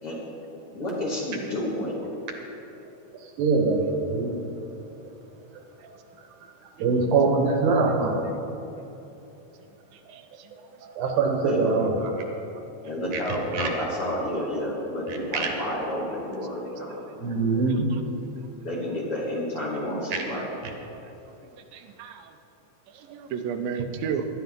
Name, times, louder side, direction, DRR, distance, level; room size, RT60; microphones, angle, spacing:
voice 1, 0.7-2.0 11.4-11.8 12.9-17.0 18.6-20.5, left 1 dB, 45° left, -4 dB, 2.4 m, -30 dB
voice 2, 3.4-4.3 6.8-8.3 10.8-12.0 13.1-13.2 13.5-13.7 15.3-15.5 17.2-17.9 20.1-20.2, right 4 dB, 70° right, 2 dB, 2.5 m, -23 dB
voice 3, 9.9-10.8 17.7-18.0 19.6-19.7 21.7-22.3 22.9-24.3, right 7 dB, 85° right, 6 dB, 2.5 m, -34 dB
17.5 x 11.0 x 3.7 m, 3.0 s
omnidirectional pair, 3.9 m